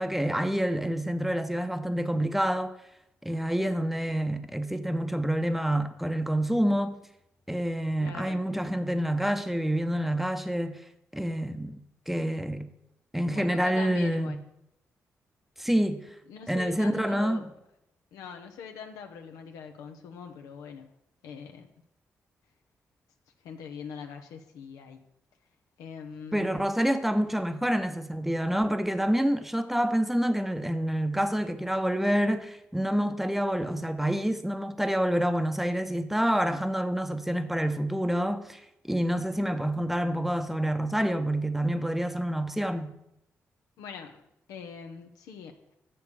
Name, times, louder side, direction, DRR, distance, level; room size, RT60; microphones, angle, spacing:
voice 1, 0.0-2.7 3.2-7.0 7.5-10.8 11.1-11.8 12.1-12.7 13.1-14.4 15.6-16.1 16.5-17.5 26.3-42.9, equal, 5° right, 0.8 m, -27 dB
voice 2, 8.0-8.4 13.3-14.4 16.3-17.4 18.1-20.9 21.2-21.7 23.4-25.0 25.8-26.6 43.8-44.2 44.5-45.6, left 6 dB, 90° left, 0.7 m, -42 dB
6.9 x 6.9 x 4.9 m
supercardioid pair, 55°, 6 cm